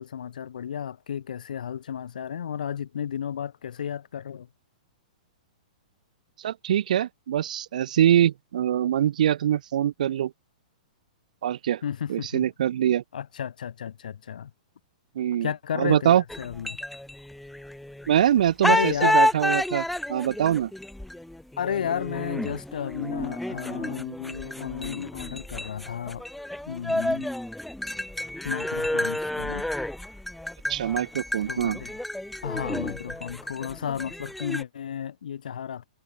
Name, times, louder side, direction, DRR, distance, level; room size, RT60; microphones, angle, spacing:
voice 1, 0.0-4.5 11.8-12.4 13.1-14.5 15.4-16.8 18.7-19.2 21.6-26.2 26.7-27.3 28.4-29.7 31.5-31.9 32.4-35.8, left 8 dB, 85° left, 1.4 m, -33 dB
voice 2, 6.4-10.3 11.4-11.8 12.1-13.0 15.2-16.2 18.1-20.7 30.7-31.8, right 10 dB, 70° right, 0.4 m, -24 dB
sound 1, 16.3-18.2 18.6-34.6, left 1 dB, ahead, 0.3 m, -30 dB
hypercardioid pair, 160°, 4 cm